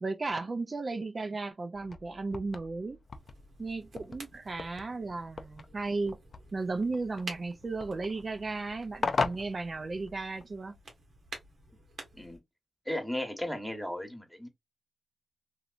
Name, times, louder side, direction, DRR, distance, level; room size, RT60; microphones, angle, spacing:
voice 1, 0.0-3.0 3.6-6.2 6.5-10.8, right 3 dB, 50° right, 0.4 m, -35 dB
sound 1, 1.7-10.4, left 4 dB, 65° left, 0.4 m, -39 dB
sound 2, 3.1-12.4, right 3 dB, 85° right, 1.0 m, -50 dB
voice 2, 12.9-14.5, left 1 dB, 5° left, 1.0 m, -35 dB
3.0 x 2.6 x 2.4 m
cardioid pair, 55°, 0 cm